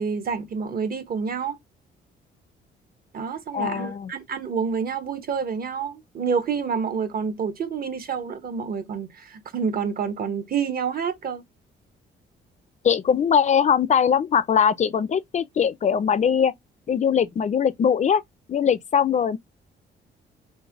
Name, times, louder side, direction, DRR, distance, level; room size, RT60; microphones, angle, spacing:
voice 1, 0.0-1.6 3.1-11.4, right 6 dB, 50° right, 0.9 m, -28 dB
voice 2, 3.5-4.1 12.8-16.5 16.9-18.2 18.5-19.4, left 7 dB, 35° left, 0.4 m, -21 dB
3.2 x 2.2 x 3.4 m
cardioid pair, 90°, 20 cm